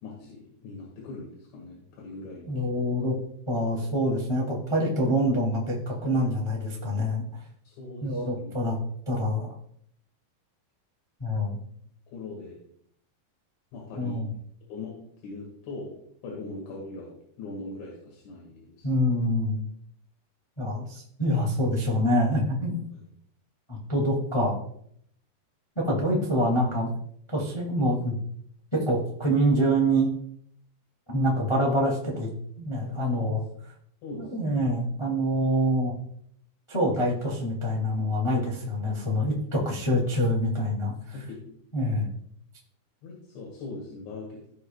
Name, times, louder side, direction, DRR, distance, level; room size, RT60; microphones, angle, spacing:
voice 1, 0.0-2.9 6.2-6.6 7.6-8.7 12.1-12.6 13.7-14.3 14.7-15.9 16.2-19.2 22.9-23.0 33.1-33.3 34.0-34.7 41.1-41.4 43.0-44.5, left 3 dB, 75° left, -3 dB, 4.3 m, -41 dB
voice 2, 2.5-3.1 3.5-7.2 8.0-8.7 9.0-9.5 11.2-11.6 14.0-14.3 18.8-19.6 20.6-22.8 23.7-24.6 25.7-26.9 27.3-28.1 28.7-30.1 31.1-32.3 32.6-33.4 34.2-35.9 36.7-41.1 41.7-42.1, equal, 30° left, -2 dB, 0.5 m, -26 dB
17.5 x 6.6 x 2.4 m, 0.67 s
omnidirectional pair, 5.4 m